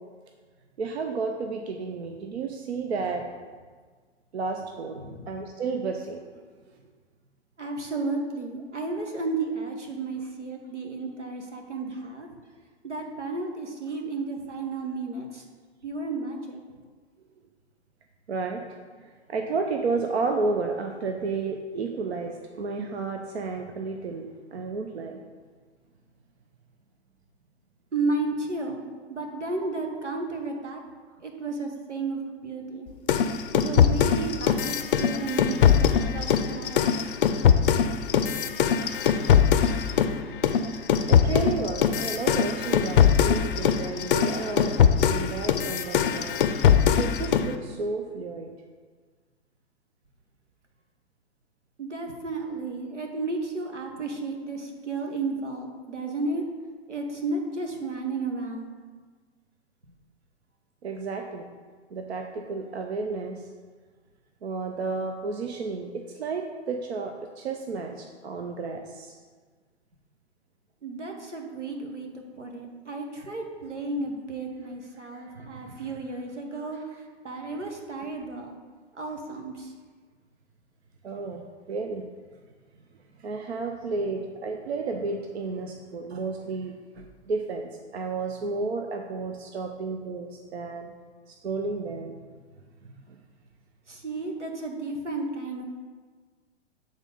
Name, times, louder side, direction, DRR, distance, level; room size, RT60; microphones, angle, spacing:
voice 1, 0.8-3.2 4.3-5.0 5.3-6.2 18.3-18.6 19.3-25.2 29.9-30.0 40.6-46.4 47.0-48.5 60.8-61.5 61.9-63.4 64.4-69.1 75.1-75.6 81.0-82.0 83.2-90.9 91.3-92.1, right 4 dB, 65° right, 3 dB, 0.7 m, -32 dB
voice 2, 7.6-12.3 12.8-15.4 15.8-16.6 27.9-28.8 29.1-30.8 31.2-32.9 33.5-37.2 51.8-56.4 56.9-58.7 70.8-76.8 77.2-78.6 78.9-79.7 93.9-95.6, right 3 dB, 85° right, 2 dB, 1.2 m, -33 dB
sound 1, 33.1-40.2 40.4-47.5, left 8 dB, 50° left, 0.5 m, -21 dB
7.3 x 3.8 x 5.1 m, 1.5 s
figure-of-eight pair, 110°, 35 cm